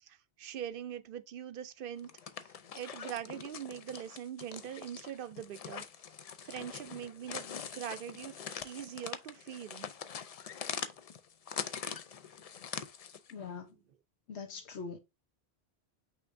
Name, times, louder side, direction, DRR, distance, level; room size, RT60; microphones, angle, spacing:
voice 1, 0.1-2.1 2.7-5.8 6.4-7.5 7.7-8.3 8.6-9.9, right 10 dB, 60° right, 0.8 m, -42 dB
sound 1, 2.0-13.3, left 7 dB, 55° left, 0.4 m, -43 dB
voice 2, 13.3-13.7 14.3-15.0, left 5 dB, 85° left, 1.1 m, -42 dB
5.8 x 3.3 x 2.5 m
omnidirectional pair, 1.1 m